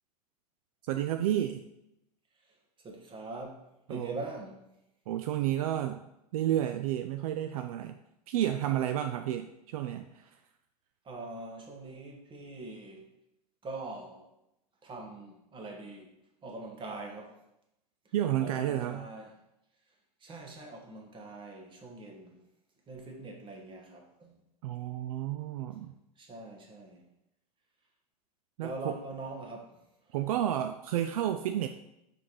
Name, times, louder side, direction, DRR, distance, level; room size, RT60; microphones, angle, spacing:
voice 1, 0.9-1.6 3.9-4.1 5.1-6.0 6.3-8.0 8.3-10.3 18.1-19.0 24.6-25.9 28.6-28.9 30.1-31.7, right 11 dB, 65° right, 8 dB, 0.4 m, -31 dB
voice 2, 2.5-3.6 3.9-4.7 11.0-13.1 13.6-14.3 14.8-16.1 16.4-17.4 18.0-18.1 18.4-19.3 20.2-22.4 22.9-24.4 25.7-27.1 28.6-29.8 30.1-30.2, right 2 dB, 25° right, 1 dB, 1.5 m, -43 dB
5.1 x 4.4 x 4.8 m, 0.85 s
hypercardioid pair, 95°, 20 cm